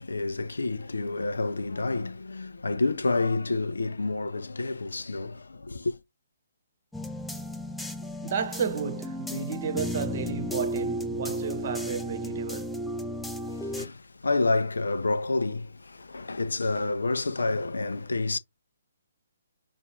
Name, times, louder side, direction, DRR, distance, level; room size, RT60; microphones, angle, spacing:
voice 1, 0.0-6.0 13.4-18.4, left 3 dB, 70° left, 0.5 m, -29 dB
sound 1, 6.9-13.9, equal, 5° left, 0.4 m, -33 dB
voice 2, 8.0-12.8, right 6 dB, 45° right, 0.9 m, -33 dB
5.9 x 2.4 x 2.7 m
figure-of-eight pair, 135°, 0 cm